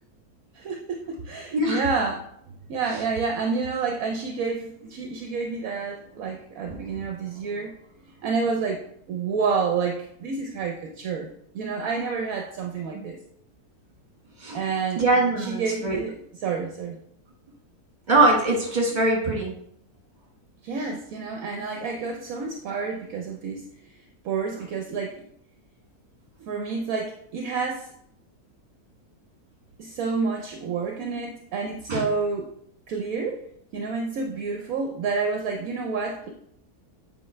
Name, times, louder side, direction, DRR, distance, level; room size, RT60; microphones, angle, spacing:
voice 1, 0.5-2.3 2.7-7.7 8.2-8.8 9.1-11.3 11.5-13.2 14.5-15.0 15.4-16.1 16.4-17.0 20.6-23.6 24.2-25.2 26.4-27.9 29.8-32.5 32.9-33.4 33.7-36.3, right 5 dB, 65° right, 3 dB, 1.0 m, -29 dB
voice 2, 1.5-1.8 12.9-13.0 14.4-14.6 15.0-16.0 18.1-19.5 31.9-32.0, right 2 dB, 30° right, -1 dB, 1.7 m, -22 dB
7.9 x 4.6 x 3.2 m, 0.70 s
omnidirectional pair, 1.7 m